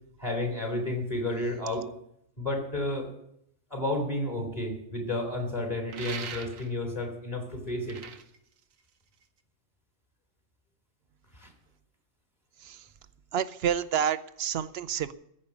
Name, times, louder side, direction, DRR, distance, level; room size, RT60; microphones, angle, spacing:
voice 1, 0.2-1.9 2.4-3.1 3.7-8.0 11.4-11.5, left 1 dB, 30° left, 2 dB, 2.8 m, -31 dB
sound 1, 5.9-6.9 7.7-9.4, right 7 dB, 80° right, 1.3 m, -41 dB
voice 2, 13.3-15.1, right 9 dB, 60° right, 15 dB, 0.8 m, -29 dB
15.0 x 5.4 x 9.4 m, 0.74 s
omnidirectional pair, 1.4 m